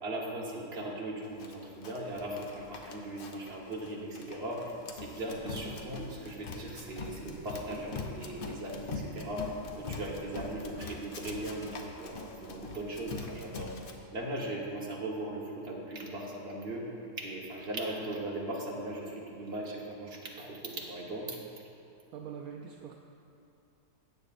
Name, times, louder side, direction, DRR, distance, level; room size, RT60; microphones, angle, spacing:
voice 1, 0.0-13.7 14.1-16.8 17.2-21.4, right 1 dB, 40° right, -3 dB, 1.4 m, -38 dB
Run, 1.4-13.9, left 4 dB, 55° left, 0.6 m, -43 dB
voice 2, 22.1-23.0, right 7 dB, 75° right, 2 dB, 1.0 m, -43 dB
13.5 x 8.7 x 2.5 m, 2.6 s
omnidirectional pair, 1.7 m